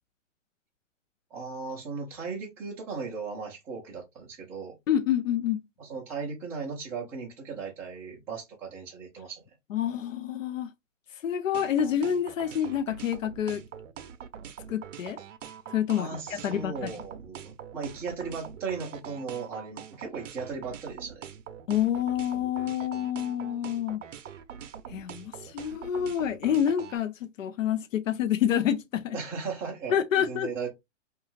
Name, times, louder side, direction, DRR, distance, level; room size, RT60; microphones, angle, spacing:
voice 1, 1.3-4.7 5.8-9.4 15.9-21.3 29.1-30.7, right 5 dB, 5° right, 0.3 m, -37 dB
voice 2, 4.9-5.6 9.7-10.7 11.2-13.6 14.7-15.2 15.7-16.9 21.7-24.0 24.9-29.2 29.9-30.5, left 9 dB, 90° left, 0.5 m, -28 dB
sound 1, 11.5-27.0, right 9 dB, 75° right, 0.6 m, -43 dB
2.5 x 2.3 x 3.0 m
hypercardioid pair, 130°, 38 cm